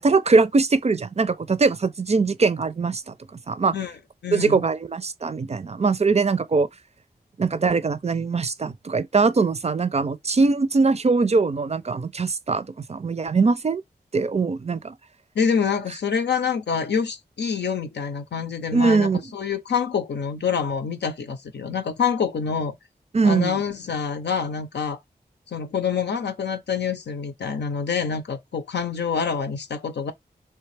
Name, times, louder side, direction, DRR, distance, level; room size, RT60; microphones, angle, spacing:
voice 1, 0.0-3.1 3.5-3.8 4.3-6.7 7.4-13.8 14.1-14.9 18.7-19.2 23.1-23.6, right 4 dB, 40° right, 0.4 m, -21 dB
voice 2, 4.2-4.6 15.3-22.7 23.2-25.0 25.5-30.1, left 6 dB, 85° left, 0.6 m, -26 dB
3.3 x 2.7 x 3.3 m
cardioid pair, 40°, 17 cm